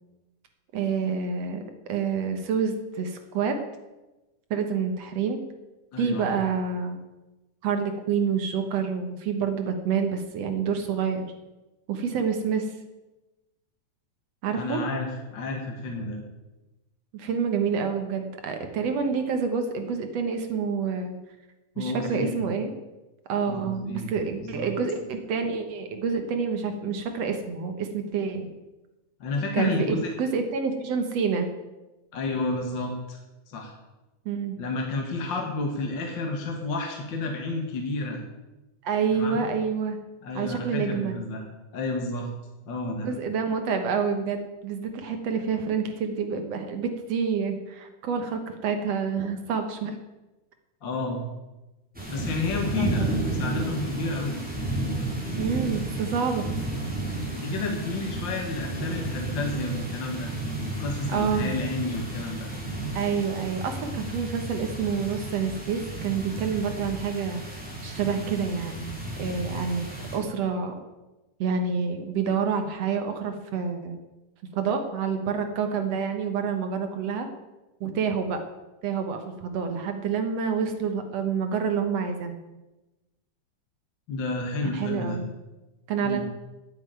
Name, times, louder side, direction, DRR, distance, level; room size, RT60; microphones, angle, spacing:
voice 1, 0.7-1.6 1.9-3.6 4.5-5.4 6.0-7.0 7.6-11.2 11.9-12.7 14.4-14.8 17.1-21.2 21.8-22.7 23.3-28.5 29.5-31.5 34.3-34.6 38.8-40.0 40.4-41.2 43.0-49.9 52.8-53.1 55.4-56.5 61.1-61.5 62.9-68.9 69.2-70.7 71.4-74.0 74.5-77.3 77.8-78.4 78.8-82.4 84.7-85.3 85.9-86.2, right 6 dB, 65° right, 6 dB, 2.0 m, -28 dB
voice 2, 5.9-6.3 14.5-16.2 21.8-22.4 23.5-24.1 24.4-24.7 29.2-30.1 32.1-33.2 33.5-33.7 34.6-38.2 39.1-39.4 40.2-41.5 41.7-42.3 42.7-43.1 50.8-51.2 52.1-54.4 57.1-62.5 84.1-85.2 86.0-86.2, left 2 dB, 45° left, 1 dB, 1.8 m, -31 dB
sound 1, 51.9-70.2, right 2 dB, 5° right, 3.2 m, -32 dB
9.5 x 8.9 x 9.1 m, 1.1 s
omnidirectional pair, 3.6 m